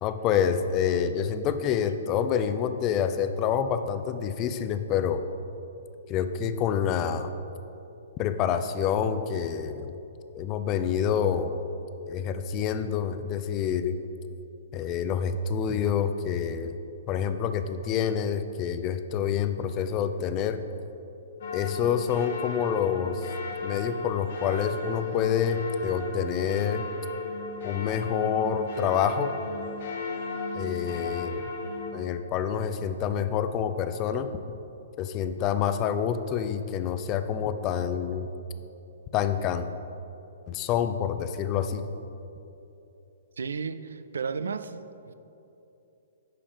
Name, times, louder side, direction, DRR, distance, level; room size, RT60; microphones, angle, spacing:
voice 1, 0.0-5.2 6.1-7.3 8.2-10.0 10.3-11.6 12.1-14.0 14.7-16.8 17.1-20.6 21.5-23.3 23.6-26.9 27.6-29.4 30.5-31.4 31.9-34.3 35.0-38.3 39.1-39.7 40.5-41.8, left 8 dB, 30° left, 10 dB, 0.4 m, -27 dB
sound 1, 21.4-31.9, left 3 dB, 60° left, 1.4 m, -35 dB
voice 2, 43.4-44.8 45.0-45.1, right 5 dB, 70° right, 11 dB, 0.3 m, -33 dB
10.0 x 3.4 x 5.1 m, 2.9 s
figure-of-eight pair, 120°, 0 cm